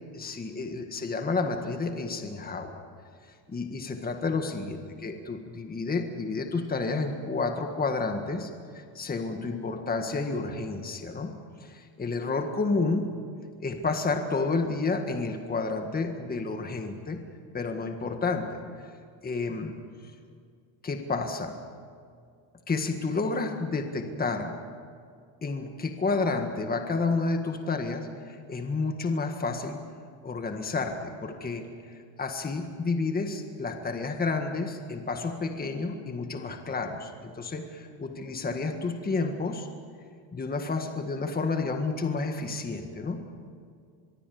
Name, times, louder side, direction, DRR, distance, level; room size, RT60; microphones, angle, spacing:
voice 1, 0.1-2.8 3.5-11.3 11.6-13.1 13.6-17.2 17.5-18.6 19.2-19.8 20.8-21.6 22.7-24.6 25.4-29.8 30.2-31.6 31.9-39.7 40.3-43.2, left 3 dB, 20° left, 5 dB, 1.7 m, -30 dB
24.5 x 23.0 x 7.1 m, 2.2 s
cardioid pair, 145°, 50 cm